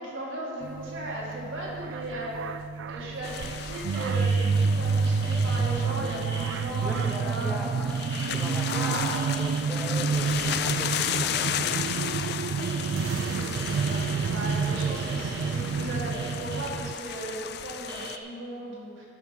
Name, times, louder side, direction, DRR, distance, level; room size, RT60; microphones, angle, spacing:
voice 1, 0.0-2.5 2.8-7.8 8.7-9.2 13.0-14.0 14.3-19.1, right 1 dB, 85° right, -4 dB, 2.3 m, -36 dB
sound 1, 0.6-16.9, right 5 dB, 70° right, 0.3 m, -29 dB
sound 2, 3.2-18.2, left 9 dB, 55° left, 0.4 m, -35 dB
sound 3, 3.2-12.3 12.6-16.8 17.5-17.6 17.9-18.2, right 1 dB, 25° right, 1.0 m, -43 dB
voice 2, 6.8-7.9 8.3-12.9, equal, ahead, 1 dB, 0.8 m, -40 dB
10.5 x 6.0 x 5.9 m, 2.4 s
head